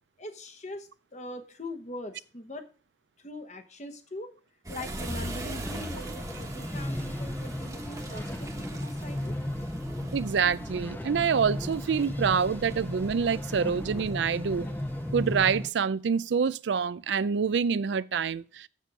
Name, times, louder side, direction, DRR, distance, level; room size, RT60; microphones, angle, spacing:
voice 1, 0.2-2.6 3.2-4.3 4.7-9.3, left 1 dB, 40° left, 1.1 m, -41 dB
sound 1, 4.6-15.7, right 1 dB, 20° right, 1.2 m, -40 dB
sound 2, 5.6-15.7, left 1 dB, 10° left, 0.4 m, -36 dB
voice 2, 10.1-14.7 15.1-18.7, right 6 dB, 80° right, 0.4 m, -26 dB
7.4 x 7.4 x 5.4 m
head